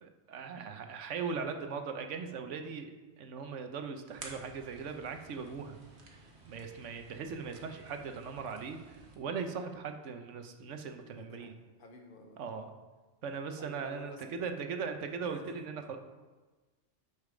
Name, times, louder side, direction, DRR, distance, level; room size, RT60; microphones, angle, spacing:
voice 1, 0.0-5.8 6.1-11.5 12.4-12.7 13.2-16.0, right 5 dB, 85° right, 6 dB, 1.1 m, -39 dB
sound 1, 4.1-9.2, right 3 dB, 65° right, 1.5 m, -53 dB
voice 2, 11.1-12.4 13.6-14.5 15.2-15.7, left 2 dB, 50° left, 3 dB, 1.1 m, -52 dB
7.3 x 6.4 x 5.0 m, 1.3 s
omnidirectional pair, 1.2 m